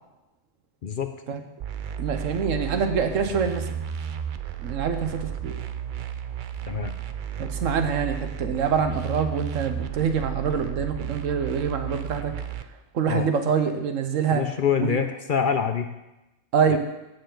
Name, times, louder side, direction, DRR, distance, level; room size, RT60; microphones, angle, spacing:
sound 1, 1.6-12.6, right 8 dB, 55° right, 0.6 m, -33 dB
voice 1, 2.0-3.7 4.6-5.5 7.4-12.3 12.9-14.4 14.8-15.0 16.5-16.8, right 6 dB, 90° right, 7 dB, 1.3 m, -25 dB
voice 2, 14.3-15.9 16.7-16.8, left 7 dB, 50° left, 8 dB, 0.7 m, -25 dB
15.5 x 6.9 x 3.9 m, 0.96 s
omnidirectional pair, 1.3 m